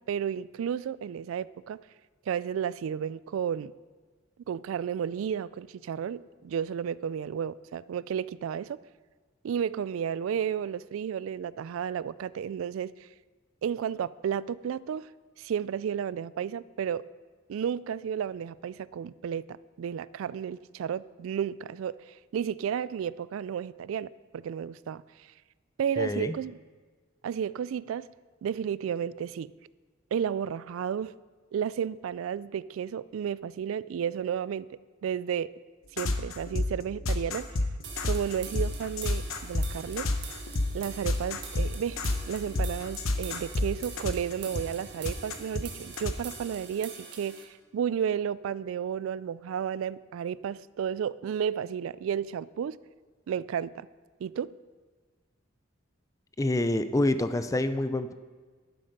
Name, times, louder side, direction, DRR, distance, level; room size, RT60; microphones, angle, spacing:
voice 1, 0.0-1.8 2.3-3.7 4.5-8.8 9.4-12.9 13.6-15.1 15.4-17.1 17.5-19.5 19.8-25.0 25.8-26.6 27.2-28.1 28.4-29.5 30.1-31.1 31.5-34.7 35.0-35.5 35.9-37.5 38.0-40.1 40.7-52.8 53.3-53.9 54.2-54.5, right 8 dB, 85° right, 19 dB, 0.3 m, -32 dB
voice 2, 26.0-26.3 56.4-58.1, left 1 dB, 15° left, 11 dB, 0.4 m, -27 dB
sound 1, 36.0-46.3, left 2 dB, 90° left, 0.9 m, -30 dB
sound 2, 37.8-47.4, right 5 dB, 55° right, 1.5 m, -45 dB
11.5 x 7.6 x 5.3 m, 1.4 s
head